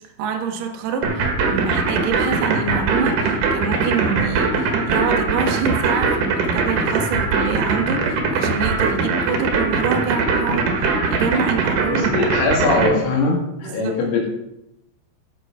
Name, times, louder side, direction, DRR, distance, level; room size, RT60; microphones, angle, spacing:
voice 1, 0.2-12.3 13.6-14.0, right 6 dB, 80° right, 3 dB, 1.9 m, -26 dB
sound 1, 1.0-12.9, right 4 dB, 60° right, 2.3 m, -20 dB
voice 2, 11.9-14.3, left 3 dB, 75° left, -1 dB, 4.7 m, -21 dB
13.0 x 7.0 x 5.1 m, 0.85 s
omnidirectional pair, 5.8 m